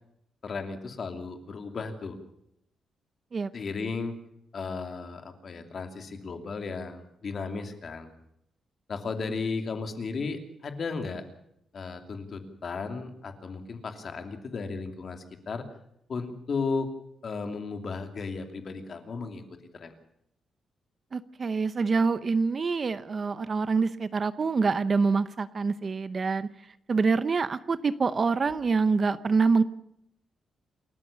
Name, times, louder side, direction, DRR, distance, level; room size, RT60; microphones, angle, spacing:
voice 1, 0.4-2.2 3.5-4.1 4.5-8.1 8.9-11.2 11.7-15.7 16.1-16.9 17.2-19.4 19.7-19.9, left 4 dB, 40° left, 6 dB, 2.8 m, -35 dB
voice 2, 21.1-26.5 26.9-29.6, right 4 dB, 30° right, 14 dB, 0.7 m, -26 dB
28.5 x 14.5 x 6.9 m, 0.77 s
wide cardioid pair, 170°, 0 cm